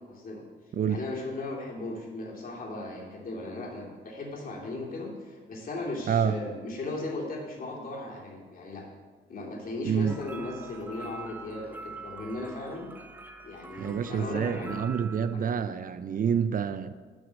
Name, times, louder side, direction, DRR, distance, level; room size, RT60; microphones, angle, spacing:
voice 1, 0.1-0.4 0.9-8.8 9.3-12.9 13.4-14.8 15.3-15.5, left 2 dB, 45° left, -2 dB, 2.8 m, -37 dB
sound 1, 10.1-15.3, right 3 dB, 10° right, 0.7 m, -45 dB
voice 2, 13.8-16.9, right 7 dB, 45° right, 12 dB, 0.5 m, -27 dB
10.5 x 6.2 x 6.3 m, 1.4 s
cardioid pair, 90°, 20 cm